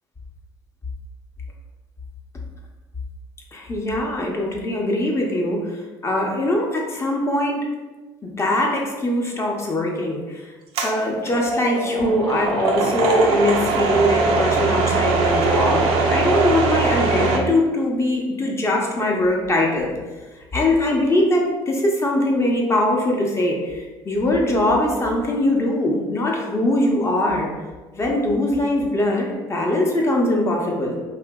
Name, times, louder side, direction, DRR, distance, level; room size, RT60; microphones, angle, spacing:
voice 1, 3.5-7.7 8.2-10.5 10.8-19.9 20.5-27.5 27.9-31.0, left 1 dB, 25° left, -1 dB, 0.6 m, -21 dB
sound 1, 10.8-17.4, right 3 dB, 80° right, 0.4 m, -21 dB
2.8 x 2.4 x 2.2 m, 1.3 s
supercardioid pair, 80°, 10 cm